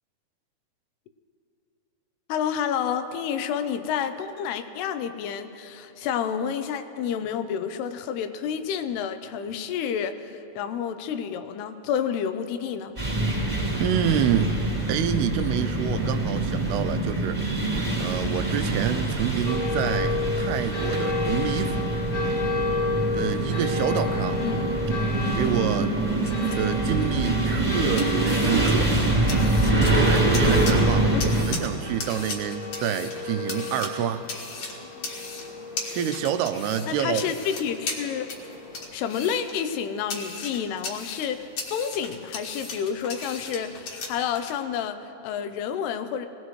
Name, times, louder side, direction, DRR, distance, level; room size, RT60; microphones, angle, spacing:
voice 1, 2.3-12.9 24.4-24.6 31.0-31.3 36.9-38.3 38.9-46.3, left 8 dB, 90° left, 9 dB, 2.8 m, -29 dB
sound 1, 13.0-31.5, right 2 dB, 10° right, 2.9 m, -25 dB
voice 2, 13.8-14.5 14.9-17.7 18.0-22.0 23.1-24.4 25.3-25.9 26.6-28.9 29.8-34.3 35.9-37.4, right 9 dB, 90° right, 9 dB, 2.7 m, -28 dB
sound 2, 19.5-38.9, left 3 dB, 25° left, 2.4 m, -33 dB
sound 3, 26.0-44.5, left 3 dB, 55° left, 2.5 m, -38 dB
21.5 x 18.5 x 3.2 m, 2.8 s
omnidirectional pair, 4.5 m